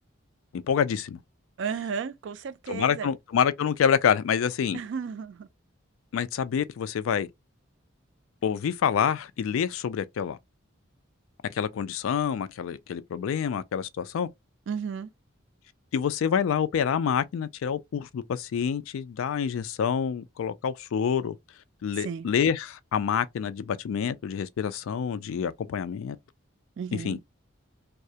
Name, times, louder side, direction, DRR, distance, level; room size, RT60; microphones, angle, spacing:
voice 1, 0.5-1.2 2.7-4.8 6.1-7.3 8.4-10.4 11.5-14.3 15.9-21.3 21.8-26.2 26.9-27.2, left 7 dB, 80° left, 0.3 m, -27 dB
voice 2, 1.6-3.1 4.7-5.5 14.7-15.1 22.0-22.3 26.8-27.2, right 6 dB, 60° right, 0.3 m, -33 dB
2.2 x 2.0 x 2.7 m
head